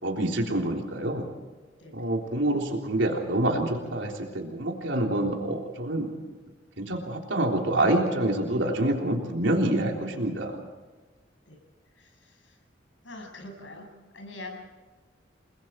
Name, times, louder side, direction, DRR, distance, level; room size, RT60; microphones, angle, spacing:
voice 1, 0.0-1.3 1.9-6.1 6.8-10.6, right 1 dB, 85° right, 1 dB, 3.6 m, -27 dB
voice 2, 12.0-12.6 13.0-13.9 14.1-14.6, left 2 dB, 90° left, 3 dB, 6.9 m, -43 dB
30.0 x 21.5 x 4.7 m, 1.3 s
head